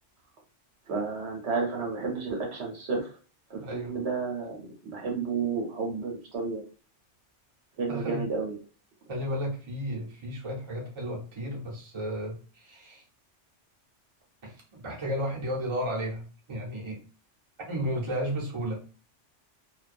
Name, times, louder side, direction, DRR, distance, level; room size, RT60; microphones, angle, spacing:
voice 1, 0.9-3.1 3.5-6.6 7.8-8.5, right 4 dB, 65° right, 0 dB, 0.9 m, -31 dB
voice 2, 3.5-4.0 7.9-8.2 9.1-13.0 14.4-17.0 17.7-18.8, equal, 30° right, -2 dB, 0.7 m, -33 dB
2.3 x 2.2 x 2.4 m, 0.37 s
omnidirectional pair, 1.2 m